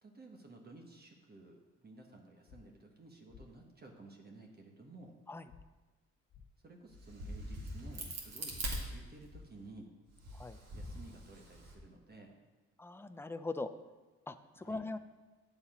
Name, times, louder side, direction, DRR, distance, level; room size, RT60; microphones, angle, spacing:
voice 1, 0.0-5.1 6.6-9.9 10.7-12.3 14.5-14.8, right 2 dB, 30° right, 1 dB, 1.4 m, -54 dB
sound 1, 2.5-2.6 3.3-3.4 5.5-5.6 6.3-6.4 8.5-8.6 9.3-9.4, left 7 dB, 80° left, 1.7 m, -55 dB
Crack, 6.9-9.6 10.1-11.7, right 1 dB, 55° right, 2.1 m, -42 dB
voice 2, 12.8-13.7 14.3-15.0, left 3 dB, 10° left, 10 dB, 0.5 m, -41 dB
8.9 x 7.1 x 5.0 m, 1.2 s
cardioid pair, 90°, 30 cm